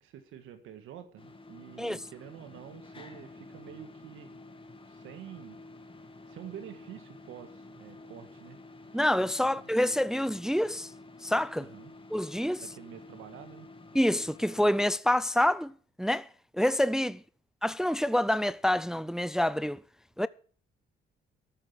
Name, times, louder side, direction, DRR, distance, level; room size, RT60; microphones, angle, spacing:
voice 1, 0.0-4.4 4.9-5.6 6.3-8.6 9.4-9.9 11.6-11.9 12.6-13.7, right 10 dB, 85° right, 1.8 m, -48 dB
sound 1, 1.2-14.9, left 2 dB, 25° left, 2.3 m, -50 dB
voice 2, 8.9-10.9 11.2-11.7 12.1-12.6 13.9-15.7 16.0-16.3 16.6-17.2 17.6-19.8 20.2-20.3, left 1 dB, 5° right, 0.5 m, -27 dB
13.5 x 8.9 x 5.8 m
cardioid pair, 90°, 20 cm